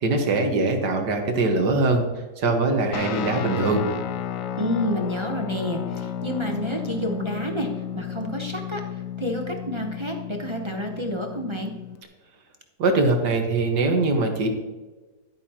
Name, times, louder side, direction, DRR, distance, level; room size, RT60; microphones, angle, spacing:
voice 1, 0.0-2.0 2.4-3.8 12.8-14.5, right 3 dB, 75° right, 4 dB, 2.0 m, -22 dB
Guitar, 2.9-12.0, left 10 dB, 65° left, 0.9 m, -32 dB
voice 2, 4.6-8.8 9.2-11.7, equal, 25° right, 2 dB, 0.8 m, -29 dB
11.0 x 9.7 x 3.0 m, 1.2 s
omnidirectional pair, 1.8 m